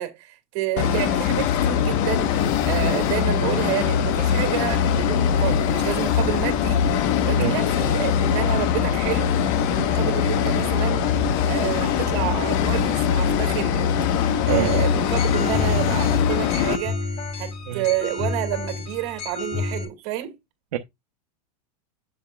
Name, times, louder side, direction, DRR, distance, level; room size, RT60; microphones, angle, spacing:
voice 1, 0.0-6.8 7.2-9.3 9.7-11.1 11.5-20.3, right 15 dB, 55° right, 2.3 m, -29 dB
sound 1, 0.8-16.8, left 8 dB, 50° left, 1.2 m, -22 dB
voice 2, 7.4-7.5 14.5-14.7 17.7-17.8 20.7-20.8, right 11 dB, 85° right, 0.9 m, -25 dB
sound 2, 14.5-19.8, left 3 dB, 35° left, 3.2 m, -31 dB
7.3 x 7.2 x 2.4 m
supercardioid pair, 135°, 19 cm